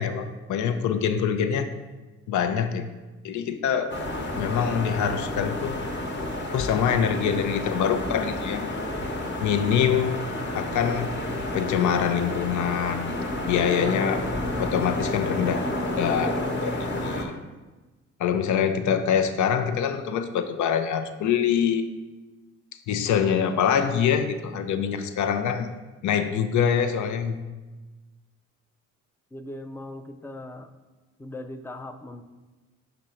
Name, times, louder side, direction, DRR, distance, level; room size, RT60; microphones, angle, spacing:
voice 1, 0.0-1.7 2.3-2.9 3.2-4.0 4.4-5.8 6.5-8.8 9.4-10.2 10.5-11.2 11.5-13.1 13.5-14.3 14.6-15.6 16.0-16.7 17.0-17.3 18.2-21.9 22.9-25.7 26.0-27.5, left 8 dB, 75° left, 9 dB, 0.6 m, -25 dB
sound 1, 3.9-17.2, left 1 dB, 35° left, 1.1 m, -30 dB
voice 2, 29.3-30.7 31.2-32.2, left 1 dB, 10° left, 8 dB, 0.4 m, -39 dB
5.2 x 5.1 x 4.3 m, 1.2 s
cardioid pair, 90°, 30 cm